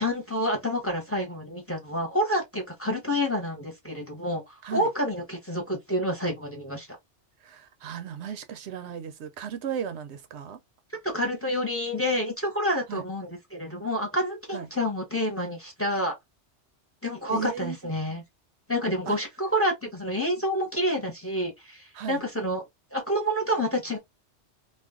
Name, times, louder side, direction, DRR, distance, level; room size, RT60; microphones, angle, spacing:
voice 1, 0.0-6.9 11.0-16.1 17.0-18.2 18.7-22.6 22.9-24.0, equal, 15° left, 0.9 m, -28 dB
voice 2, 7.4-10.6 12.9-13.0 14.5-14.7 17.3-17.8 19.1-19.2 21.9-22.2, right 8 dB, 75° right, 0.9 m, -35 dB
2.4 x 2.3 x 3.5 m
omnidirectional pair, 1.2 m